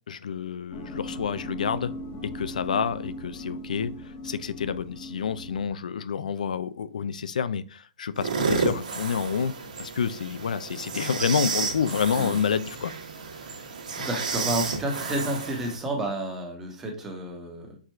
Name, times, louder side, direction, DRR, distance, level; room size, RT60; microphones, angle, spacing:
voice 1, 0.1-1.9 2.2-3.9 4.2-9.5 9.8-12.9, left 7 dB, 90° left, 0.4 m, -28 dB
sound 1, 0.7-5.7, left 1 dB, 25° left, 0.7 m, -39 dB
sound 2, 8.2-15.8, right 4 dB, 80° right, 1.2 m, -31 dB
voice 2, 13.2-17.8, right 1 dB, 10° right, 1.0 m, -31 dB
4.7 x 2.4 x 4.4 m
hypercardioid pair, 160°, 4 cm